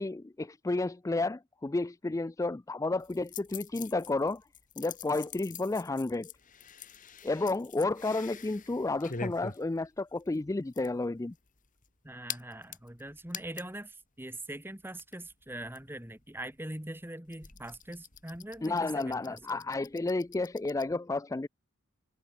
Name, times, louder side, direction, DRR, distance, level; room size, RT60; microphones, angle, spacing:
voice 1, 0.0-4.4 4.8-6.3 7.2-11.3 18.6-21.5, left 2 dB, 15° left, 0.3 m, -31 dB
sound 1, 3.0-13.8 14.2-14.3 14.5-20.8, left 6 dB, 40° left, 2.4 m, -46 dB
voice 2, 12.0-19.7, right 1 dB, 10° right, 1.8 m, -42 dB
head